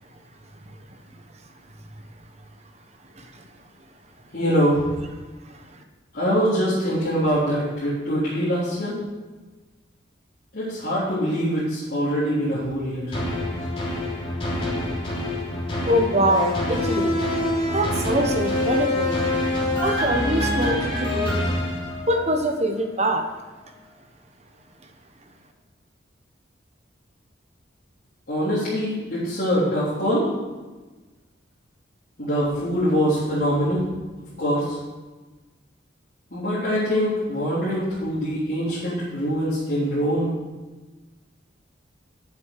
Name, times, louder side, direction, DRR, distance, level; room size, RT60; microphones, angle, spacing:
voice 1, 4.3-4.8 6.1-8.9 10.5-13.1 28.3-30.3 32.2-33.8 34.4-34.6 36.3-40.3, equal, 50° left, -12 dB, 3.6 m, -23 dB
sound 1, 13.1-22.5 23.0-23.1, left 1 dB, 30° left, 3.3 m, -25 dB
voice 2, 15.8-17.2 17.7-19.2 19.8-21.6 22.1-23.2, right 1 dB, 35° right, 4 dB, 1.1 m, -24 dB
9.4 x 7.9 x 6.6 m, 1.2 s
head